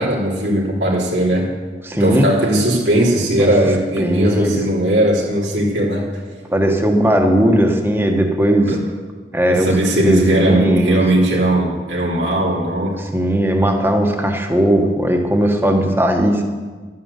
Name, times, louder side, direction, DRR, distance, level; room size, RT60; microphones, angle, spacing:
voice 1, 0.0-1.5 2.0-6.1 8.7-8.8 9.5-13.0, right 1 dB, 90° right, -4 dB, 3.2 m, -18 dB
voice 2, 1.8-2.3 3.4-3.5 4.0-4.6 6.5-8.8 9.3-9.7 10.0-11.0 13.0-16.4, right 1 dB, 15° right, 3 dB, 1.4 m, -17 dB
12.0 x 9.4 x 8.3 m, 1.4 s
head